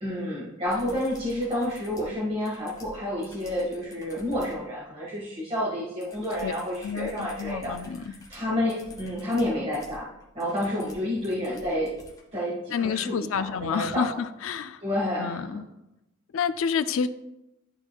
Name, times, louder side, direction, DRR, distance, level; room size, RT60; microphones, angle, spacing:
voice 1, 0.0-7.7 8.0-10.1 10.3-11.9 12.3-14.1 14.8-15.5, left 1 dB, 30° right, -7 dB, 1.5 m, -29 dB
sound 1, 0.7-4.6 6.0-12.2 14.0-14.1, left 2 dB, 20° left, 1.2 m, -50 dB
voice 2, 6.8-8.1 12.7-14.8 15.2-15.6 16.3-17.1, left 6 dB, 80° left, 12 dB, 0.4 m, -29 dB
11.5 x 4.4 x 2.3 m, 0.88 s
head